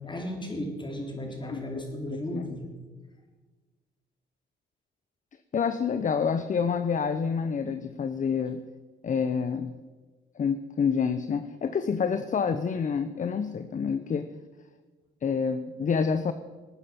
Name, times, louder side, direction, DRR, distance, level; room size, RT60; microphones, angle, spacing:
voice 1, 0.0-2.6, left 1 dB, 25° left, 2 dB, 3.7 m, -35 dB
voice 2, 1.5-1.8 2.3-2.4 5.5-8.6 9.0-9.8 10.4-14.3 15.2-16.3, left 6 dB, 40° left, 11 dB, 0.8 m, -28 dB
20.0 x 9.0 x 5.9 m, 1.4 s
cardioid pair, 90°, 20 cm